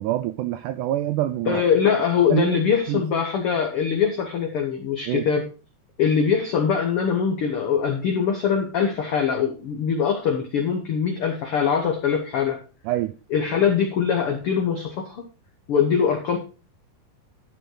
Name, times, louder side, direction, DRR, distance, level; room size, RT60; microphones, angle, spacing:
voice 1, 0.0-1.6 2.3-2.6 2.9-3.0 5.1-5.3 12.8-13.2, right 14 dB, 85° right, 1.8 m, -25 dB
voice 2, 1.5-5.5 6.0-12.6 13.3-15.3 15.7-16.4, left 7 dB, 80° left, 1.2 m, -22 dB
13.0 x 5.4 x 3.8 m
omnidirectional pair, 4.1 m